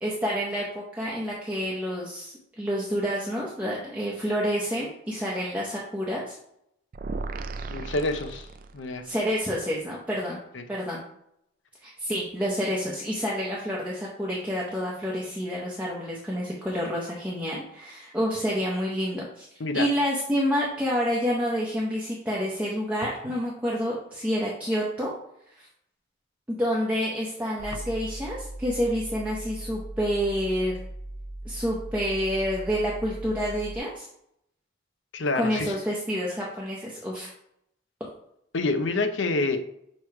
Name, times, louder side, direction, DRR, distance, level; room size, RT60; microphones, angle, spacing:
voice 1, 0.0-6.4 9.0-10.4 10.7-11.0 11.8-19.5 19.7-25.1 25.6-25.7 26.5-30.7 31.4-34.1 35.3-37.3, equal, 5° right, -5 dB, 0.8 m, -28 dB
sound 1, 6.9-9.1, right 3 dB, 45° right, 0.3 m, -35 dB
voice 2, 7.7-8.5 8.7-9.1 10.5-10.6 19.6-19.9 35.1-35.7 38.5-39.6, left 2 dB, 75° left, 7 dB, 0.7 m, -27 dB
sound 2, 27.6-33.8, right 1 dB, 55° left, 2.0 m, -39 dB
6.6 x 3.1 x 4.7 m, 0.75 s
head